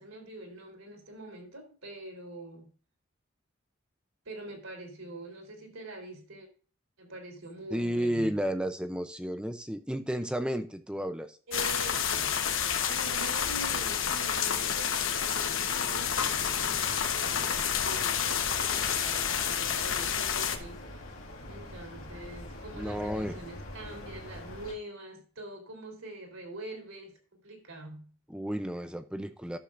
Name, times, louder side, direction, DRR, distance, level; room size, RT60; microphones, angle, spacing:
voice 1, 0.0-2.7 4.3-6.5 7.0-8.4 11.5-12.5 12.9-21.0 21.5-28.1, right 2 dB, 85° right, 3.5 m, -44 dB
voice 2, 7.7-11.4 22.7-23.4 28.3-29.6, equal, 5° right, 0.5 m, -32 dB
sound 1, 11.5-20.6, left 8 dB, 70° left, 1.1 m, -29 dB
sound 2, 15.9-24.7, left 1 dB, 85° left, 2.1 m, -44 dB
11.5 x 7.4 x 2.5 m
head